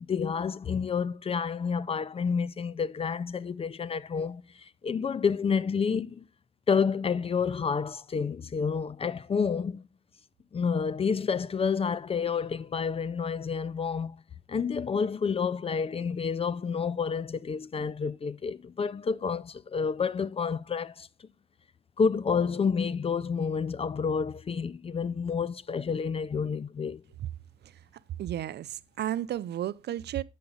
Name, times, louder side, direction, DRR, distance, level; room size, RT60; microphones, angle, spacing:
voice 1, 0.0-6.2 6.7-9.9 10.5-14.2 14.5-21.1 22.0-27.0, left 6 dB, 30° left, 0.4 m, -29 dB
voice 2, 28.2-30.2, right 11 dB, 60° right, 0.5 m, -33 dB
7.4 x 6.9 x 3.9 m
cardioid pair, 90°, 20 cm